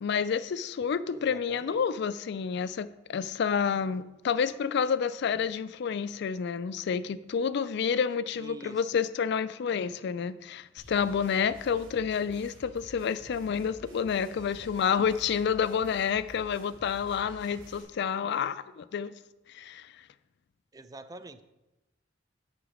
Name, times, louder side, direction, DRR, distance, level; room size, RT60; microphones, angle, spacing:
voice 1, 0.0-19.1 19.5-19.9, left 6 dB, 60° left, 15 dB, 0.3 m, -29 dB
voice 2, 1.1-1.8 8.3-9.0 20.7-21.4, right 2 dB, 20° right, 11 dB, 0.4 m, -46 dB
sound 1, 10.8-17.8, left 1 dB, 80° right, 2.5 m, -51 dB
8.0 x 5.8 x 4.9 m, 1.0 s
head